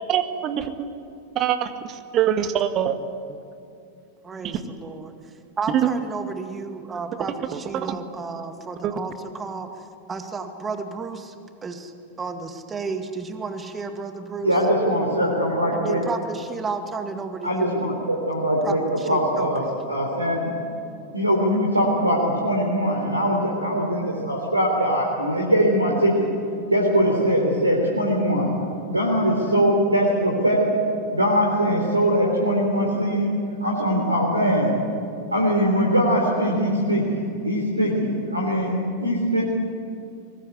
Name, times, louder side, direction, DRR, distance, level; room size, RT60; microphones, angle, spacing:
voice 1, 0.1-0.6 1.4-1.7 2.1-3.0 7.7-8.0 8.8-8.9, right 10 dB, 35° right, 9 dB, 1.9 m, -23 dB
voice 2, 4.2-5.1 5.6-11.3 11.6-11.9 12.2-14.6 15.7-17.7 18.6-19.7, right 4 dB, 20° right, 7 dB, 2.1 m, -32 dB
voice 3, 14.4-16.0 17.4-19.6 19.9-20.5 21.1-26.3 26.7-28.5 28.9-30.7 31.1-33.3 33.6-34.7 35.3-37.2 37.4-38.7 39.0-39.4, equal, 85° right, -1 dB, 3.8 m, -21 dB
23.5 x 20.5 x 9.8 m, 2.5 s
figure-of-eight pair, 90°, 0 cm